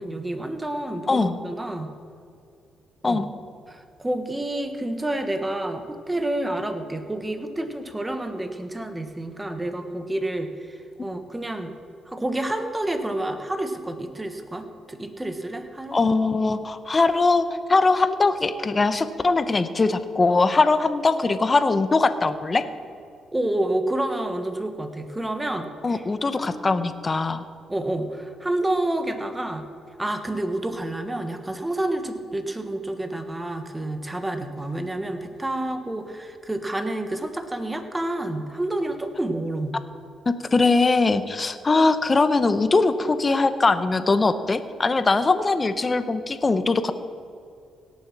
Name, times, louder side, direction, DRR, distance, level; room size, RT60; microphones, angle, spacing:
voice 1, 0.0-1.9 3.0-3.2 3.7-11.7 12.0-16.0 23.3-26.0 26.4-26.8 27.7-29.7 30.0-39.8, right 1 dB, 15° right, 7 dB, 1.3 m, -29 dB
voice 2, 1.1-1.4 3.0-3.3 15.9-22.6 25.8-27.4 40.5-46.9, left 3 dB, 30° left, 11 dB, 0.8 m, -21 dB
17.5 x 7.1 x 6.0 m, 2.5 s
cardioid pair, 90°, 0 cm